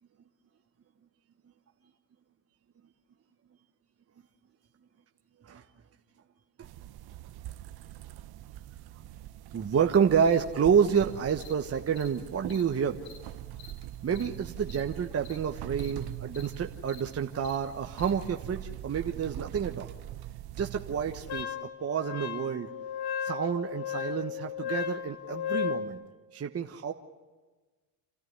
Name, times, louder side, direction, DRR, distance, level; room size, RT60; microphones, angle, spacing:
sound 1, 6.6-21.4, right 13 dB, 50° right, 0.9 m, -43 dB
voice 1, 9.5-13.0 14.0-19.9 20.6-21.5 21.8-22.7 23.2-26.0 26.3-26.9, right 7 dB, 30° right, 4 dB, 1.3 m, -29 dB
Cricket, 10.3-10.4 10.9-11.0 11.4-11.5 12.0-12.1 12.4-12.6 13.0-13.2 13.6-13.7 14.1-14.3 14.6-14.8 15.2-15.4 15.7-15.9 16.3-16.5 16.8-17.0 17.4-17.6 18.0-18.1, left 8 dB, 70° left, 2.9 m, -50 dB
Wind instrument woodwind instrument, 21.3-25.9, left 8 dB, 50° left, 1.6 m, -34 dB
28.0 x 14.0 x 9.7 m, 1.3 s
supercardioid pair, 85°, 48 cm